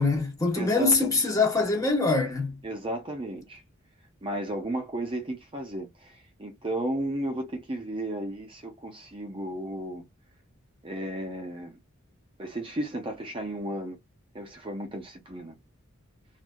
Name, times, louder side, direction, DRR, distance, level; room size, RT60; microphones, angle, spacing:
voice 1, 0.0-2.6, left 3 dB, 15° left, 1.0 m, -24 dB
voice 2, 0.5-1.2 2.6-3.6 4.2-10.0 10.8-11.8 12.4-14.0 14.3-15.6, right 1 dB, 25° right, 0.6 m, -34 dB
3.2 x 2.4 x 2.2 m
head